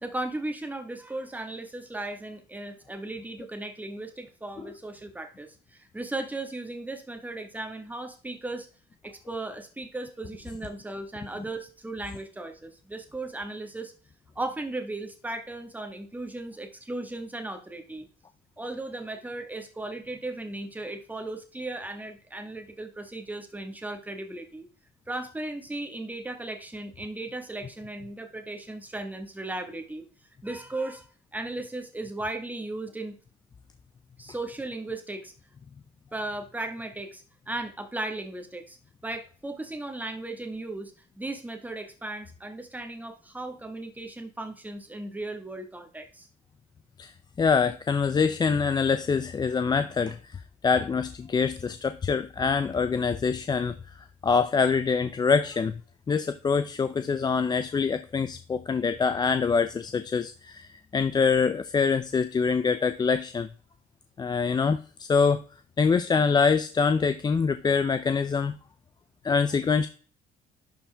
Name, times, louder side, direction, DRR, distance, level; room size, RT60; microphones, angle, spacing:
voice 1, 0.0-8.7 9.0-13.9 14.3-18.1 18.6-24.7 25.1-30.0 30.4-31.1 31.3-33.1 34.2-35.3 36.1-38.8 39.0-46.3, right 2 dB, 10° right, 6 dB, 1.5 m, -36 dB
voice 2, 47.4-53.8 54.2-55.8 56.1-63.5 64.2-65.4 65.8-68.5 69.2-69.9, left 5 dB, 25° left, 10 dB, 0.5 m, -25 dB
11.5 x 4.4 x 3.4 m, 0.38 s
cardioid pair, 110°, 17 cm